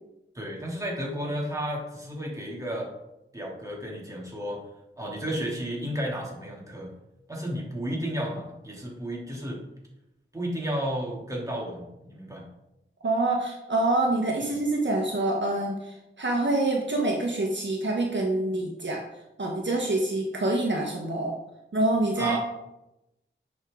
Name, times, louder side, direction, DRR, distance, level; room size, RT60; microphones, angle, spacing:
voice 1, 0.3-2.9 3.3-4.6 5.0-6.9 7.3-9.6 10.3-12.4 14.4-14.5 22.2-22.4, equal, 15° right, -3 dB, 3.1 m, -32 dB
voice 2, 13.0-19.0 19.4-21.4 21.7-22.4, right 2 dB, 65° right, 0 dB, 1.5 m, -26 dB
10.5 x 6.4 x 3.9 m, 0.88 s
wide cardioid pair, 65°, 21 cm